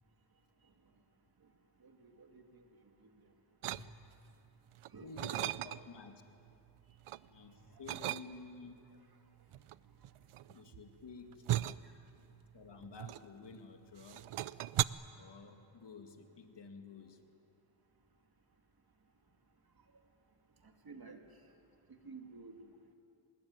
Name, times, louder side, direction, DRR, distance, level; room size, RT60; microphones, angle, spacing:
voice 1, 1.8-2.4 3.0-3.1 3.7-3.8 4.9-5.2 7.6-7.9 11.8-11.9 20.6-21.2 21.9-22.9, right 4 dB, 45° right, 4 dB, 2.4 m, -53 dB
sound 1, 3.6-4.3 4.7-6.1 6.5-7.3 7.9-8.7 9.5-13.7 14.0-14.8, right 13 dB, 80° right, 0.6 m, -37 dB
voice 2, 5.0-6.2 7.3-8.9 10.5-11.4 12.5-14.3 15.1-17.2, left 4 dB, 55° left, 5 dB, 2.1 m, -52 dB
25.5 x 21.0 x 9.6 m, 2.7 s
wide cardioid pair, 135°, 49 cm